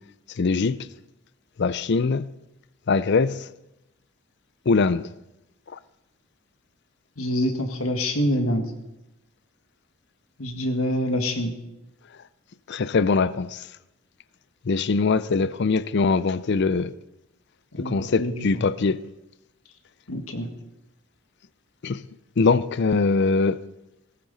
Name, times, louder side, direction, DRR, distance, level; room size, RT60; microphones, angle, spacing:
voice 1, 0.4-0.8 1.6-2.3 2.9-3.4 4.7-5.1 5.7-5.8 12.7-13.6 14.7-16.9 17.8-19.0 21.8-22.0 22.4-23.6, left 4 dB, 55° left, 0.5 m, -22 dB
voice 2, 7.2-8.7 10.4-11.5 17.7-18.4 20.1-20.5, equal, 80° left, 1.8 m, -26 dB
17.5 x 14.5 x 4.1 m
head